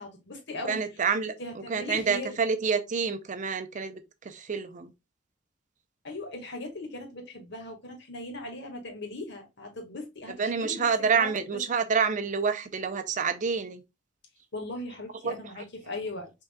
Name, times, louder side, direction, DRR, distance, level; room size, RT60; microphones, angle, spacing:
voice 1, 0.0-0.8 1.4-2.4 6.0-10.8 11.1-11.6 14.5-16.3, left 2 dB, 65° left, 1.7 m, -39 dB
voice 2, 0.6-1.3 1.7-4.9 10.4-13.8 15.2-15.3, right 5 dB, 40° right, 0.5 m, -28 dB
5.5 x 3.7 x 2.2 m
head